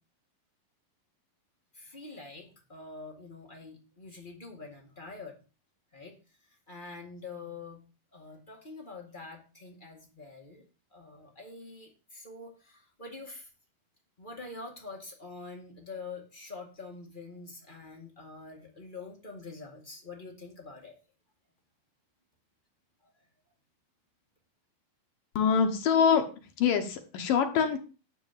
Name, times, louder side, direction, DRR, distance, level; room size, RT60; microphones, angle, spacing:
voice 1, 1.7-5.3 5.9-7.8 8.1-10.6 10.9-13.5 14.2-21.0 23.0-23.2, left 3 dB, 35° left, 1 dB, 0.7 m, -45 dB
voice 2, 25.4-26.2 26.6-27.8, left 7 dB, 70° left, 5 dB, 2.6 m, -24 dB
11.5 x 3.9 x 7.4 m, 0.34 s
omnidirectional pair, 4.3 m